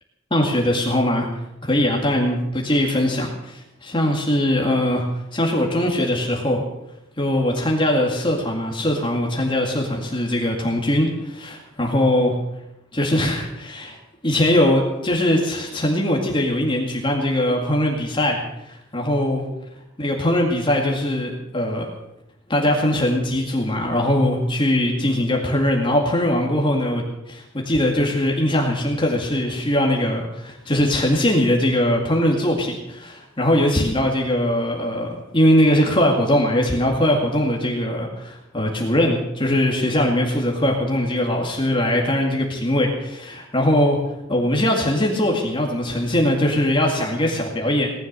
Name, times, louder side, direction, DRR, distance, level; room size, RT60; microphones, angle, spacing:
voice 1, 0.3-1.3 1.6-2.4 2.6-5.0 5.3-6.6 7.2-12.4 12.9-14.0 14.2-19.5 20.0-21.9 22.5-44.0 44.3-47.9, left 1 dB, 25° left, 0 dB, 2.1 m, -21 dB
18.5 x 11.5 x 6.7 m, 0.88 s
head